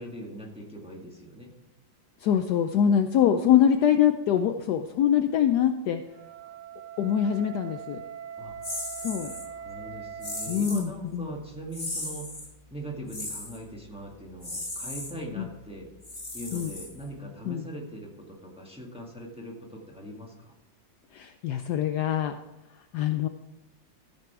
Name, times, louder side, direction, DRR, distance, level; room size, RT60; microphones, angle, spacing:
voice 1, 0.0-1.5 8.4-8.5 9.2-12.4 12.7-15.9 16.3-20.5, right 1 dB, 5° right, -2 dB, 1.5 m, -40 dB
voice 2, 2.2-6.0 7.0-8.0 9.0-9.3 10.5-11.3 15.4-15.5 16.5-16.7 17.5-17.6 21.1-22.4 22.9-23.3, left 9 dB, 75° left, 7 dB, 1.0 m, -24 dB
Wind instrument woodwind instrument, 6.0-10.7, right 8 dB, 85° right, 0.6 m, -41 dB
sound 1, 8.6-9.5 10.2-10.9 11.7-12.5 13.1-13.6 14.4-15.1 16.0-17.2, left 2 dB, 25° left, 2.1 m, -36 dB
13.5 x 6.1 x 4.6 m, 0.97 s
omnidirectional pair, 2.0 m